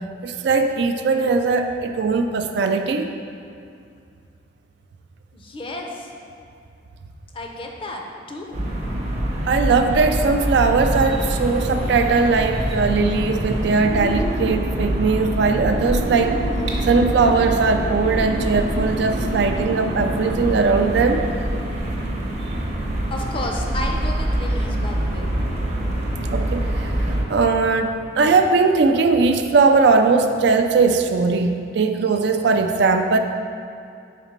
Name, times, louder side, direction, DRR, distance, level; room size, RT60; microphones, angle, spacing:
voice 1, 0.2-3.0 9.5-16.4 16.8-21.2 26.3-33.2, right 4 dB, 60° right, 6 dB, 0.3 m, -19 dB
voice 2, 5.3-6.1 7.3-8.7 23.1-25.3, left 1 dB, 30° left, 1 dB, 0.5 m, -32 dB
sound 1, 8.5-27.2, right 1 dB, 35° right, 0.7 m, -25 dB
5.0 x 4.2 x 5.1 m, 2.4 s
head